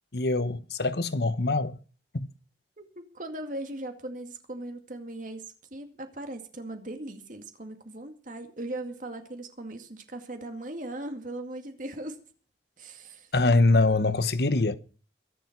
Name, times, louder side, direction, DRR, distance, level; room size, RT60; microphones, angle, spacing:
voice 1, 0.1-1.8 2.1-2.3 13.3-14.8, left 2 dB, 65° left, 1.0 m, -24 dB
voice 2, 2.8-12.2 12.8-13.3, right 1 dB, 50° right, 2.2 m, -39 dB
22.5 x 7.7 x 5.9 m
head